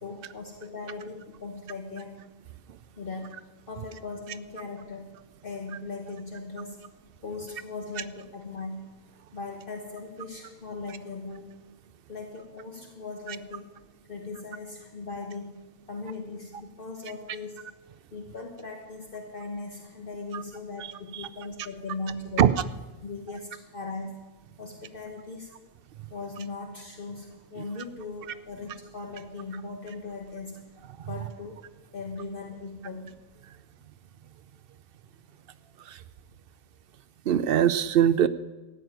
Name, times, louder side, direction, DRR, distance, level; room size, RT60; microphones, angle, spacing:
voice 1, 0.0-2.1 3.0-3.3 3.7-5.1 5.4-6.8 7.2-8.9 9.3-11.5 12.1-13.7 14.1-15.6 15.9-17.6 18.1-22.5 23.0-24.1 24.6-25.5 26.1-30.6 31.1-31.5 31.9-33.1, left 3 dB, 50° left, 1 dB, 1.5 m, -39 dB
voice 2, 37.3-38.3, right 9 dB, 60° right, 14 dB, 0.8 m, -22 dB
13.5 x 7.9 x 9.1 m, 1.1 s
omnidirectional pair, 1.2 m